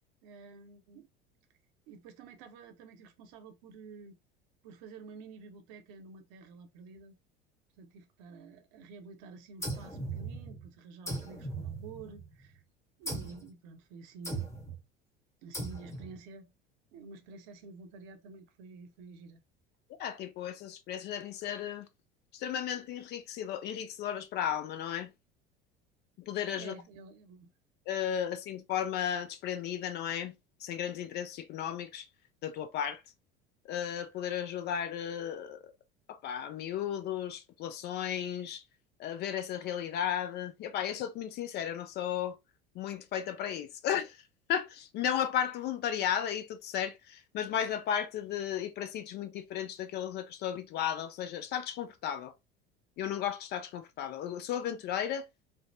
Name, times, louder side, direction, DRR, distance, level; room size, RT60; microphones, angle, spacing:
voice 1, 0.2-1.1 1.9-4.2 4.6-7.1 7.8-12.6 13.0-14.5 15.4-16.5 16.9-19.4 26.5-27.5 28.1-28.2, right 4 dB, 55° right, 0.7 m, -50 dB
sound 1, 9.6-10.7 11.1-12.4 13.1-13.5 14.2-14.8 15.5-16.2, right 2 dB, 10° left, 1.0 m, -38 dB
voice 2, 20.0-21.9 22.3-25.1 26.2-26.8 27.9-30.3 30.6-32.1 32.4-33.0 33.7-35.6 36.1-38.6 39.0-42.4 42.8-44.2 44.5-52.3 53.0-55.3, left 9 dB, 35° left, 0.4 m, -34 dB
3.2 x 2.0 x 2.6 m
figure-of-eight pair, 70°, 29 cm